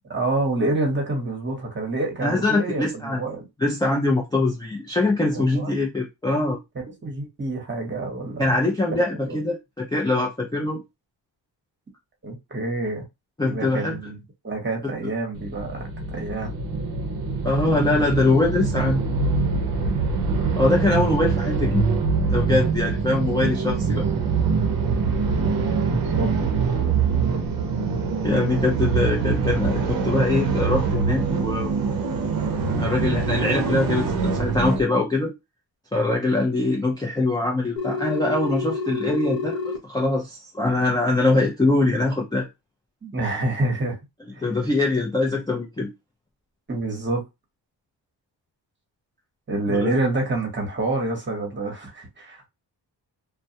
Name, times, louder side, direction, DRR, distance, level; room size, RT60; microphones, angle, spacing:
voice 1, 0.1-3.5 5.3-5.8 7.0-8.6 9.3-9.4 12.2-13.0 13.4-16.5 25.7-26.3 43.0-44.0 44.3-44.5 46.7-47.2 49.5-52.5, right 2 dB, 25° right, 1.0 m, -27 dB
voice 2, 2.2-3.2 3.6-6.6 8.4-10.8 13.4-14.0 17.4-19.0 20.6-21.9 22.3-24.1 28.2-31.7 32.7-35.3 35.9-39.6 39.8-42.5 44.4-45.9 49.7-49.9, left 2 dB, 10° left, 0.4 m, -23 dB
sound 1, 15.3-34.8, right 5 dB, 50° right, 0.7 m, -24 dB
Telephone, 37.8-39.8, left 4 dB, 55° left, 0.8 m, -28 dB
2.2 x 2.1 x 2.7 m
cardioid pair, 100°, 44 cm